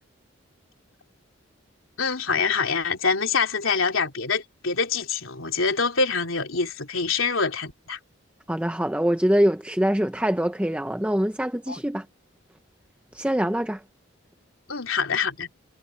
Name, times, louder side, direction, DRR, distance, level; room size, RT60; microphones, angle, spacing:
voice 1, 2.0-8.0 11.7-11.8 14.7-15.5, left 5 dB, 80° left, 3.1 m, -25 dB
voice 2, 8.5-12.1 13.1-13.8, equal, 5° right, 0.6 m, -24 dB
head